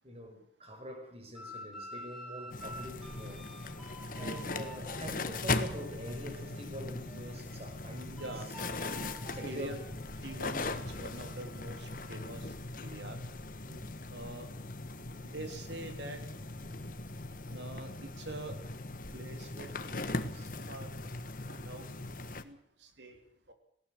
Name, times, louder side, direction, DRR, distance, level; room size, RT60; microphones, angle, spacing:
voice 1, 0.0-3.5 4.2-8.4 9.2-9.8 13.7-13.9, equal, 35° right, 5.7 m, -45 dB
sound 1, 1.3-6.6 7.0-12.3, right 1 dB, ahead, 7.1 m, -50 dB
sound 2, 2.5-22.4, left 2 dB, 45° left, 1.5 m, -39 dB
voice 2, 8.1-8.5 9.4-9.8 10.2-10.7 10.9-12.5 12.8-13.2 14.1-14.5 15.2-16.2 17.5-18.6 19.1-20.9 21.5-21.9 22.4-23.2 23.5-23.6, right 1 dB, 70° right, 3.6 m, -44 dB
19.5 x 18.0 x 7.7 m
head